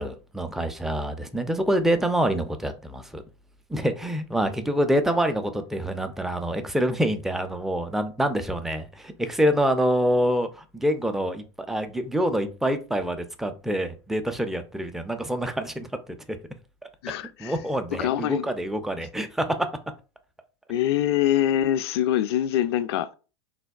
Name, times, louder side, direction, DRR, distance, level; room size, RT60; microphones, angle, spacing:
voice 1, 0.0-3.2 3.7-15.9 17.4-19.5, equal, ahead, 0.4 m, -26 dB
voice 2, 17.0-17.6 17.9-18.5 20.7-23.1, left 11 dB, 65° left, 0.4 m, -24 dB
3.3 x 2.2 x 2.2 m
hypercardioid pair, 90°, 14 cm